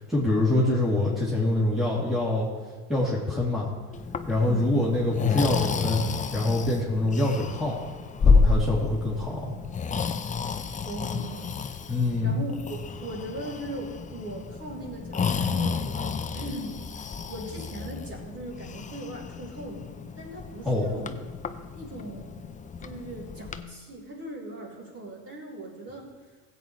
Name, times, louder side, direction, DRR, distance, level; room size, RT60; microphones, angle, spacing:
voice 1, 0.0-2.5 2.9-3.7 4.3-6.0 6.3-7.8 8.2-9.5 11.9-12.4 20.6-20.9, left 2 dB, ahead, -6 dB, 2.6 m, -25 dB
Breathing, 3.9-23.6, left 5 dB, 20° left, 0.5 m, -30 dB
voice 2, 4.4-4.9 10.8-11.8 12.2-16.8 17.3-21.1 21.7-22.5 22.8-26.1, right 1 dB, 35° right, -3 dB, 3.9 m, -39 dB
16.0 x 8.3 x 3.1 m, 1.4 s
hypercardioid pair, 80°, 42 cm